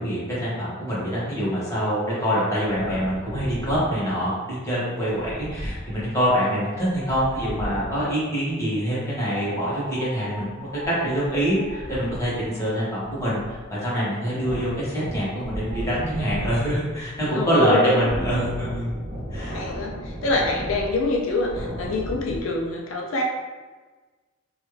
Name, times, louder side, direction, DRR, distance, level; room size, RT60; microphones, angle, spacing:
voice 1, 0.0-10.7 11.0-13.4 13.7-18.9 19.3-19.6, equal, 15° left, -9 dB, 1.2 m, -25 dB
Wind, 2.7-8.1 9.1-22.4, equal, 40° right, 1.1 m, -36 dB
voice 2, 17.3-18.5 19.5-23.2, left 2 dB, 85° left, 0 dB, 0.4 m, -26 dB
3.1 x 2.3 x 3.2 m, 1.3 s
head